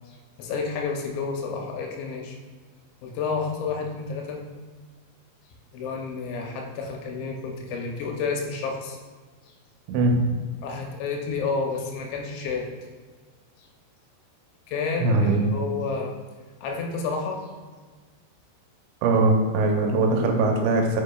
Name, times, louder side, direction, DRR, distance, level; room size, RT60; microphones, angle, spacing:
voice 1, 0.1-2.4 3.0-4.4 5.7-9.0 10.6-12.7 14.7-16.1 16.6-17.4, left 4 dB, 85° left, 1 dB, 3.1 m, -30 dB
voice 2, 9.9-10.4 15.0-15.4 19.0-21.0, right 2 dB, 90° right, 2 dB, 3.1 m, -21 dB
8.1 x 5.8 x 2.3 m, 1.4 s
omnidirectional pair, 5.1 m